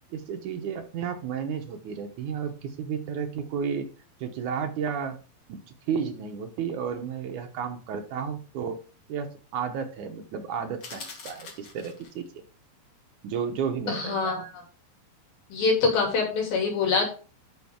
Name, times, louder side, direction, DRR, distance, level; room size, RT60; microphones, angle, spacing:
voice 1, 0.1-3.9 4.2-5.2 5.5-8.8 9.1-12.4 13.2-14.5, right 7 dB, 70° right, 5 dB, 2.1 m, -32 dB
sound 1, 10.8-12.3, left 4 dB, 45° left, 2.0 m, -43 dB
voice 2, 13.9-14.6 15.5-17.1, left 4 dB, 75° left, 1 dB, 4.5 m, -25 dB
10.5 x 6.3 x 3.6 m, 0.37 s
omnidirectional pair, 4.3 m